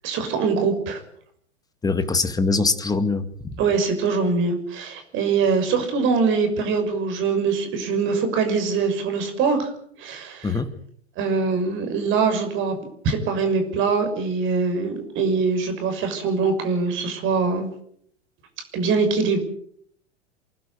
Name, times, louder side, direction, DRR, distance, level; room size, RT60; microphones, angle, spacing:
voice 1, 0.0-1.0 3.6-9.7 10.0-10.6 11.2-12.7 13.0-17.7 18.7-19.4, right 4 dB, 35° right, 7 dB, 6.4 m, -23 dB
voice 2, 1.8-3.5 10.4-10.7, left 3 dB, 10° left, 10 dB, 2.1 m, -23 dB
28.5 x 11.5 x 9.4 m, 0.66 s
figure-of-eight pair, 95°, 34 cm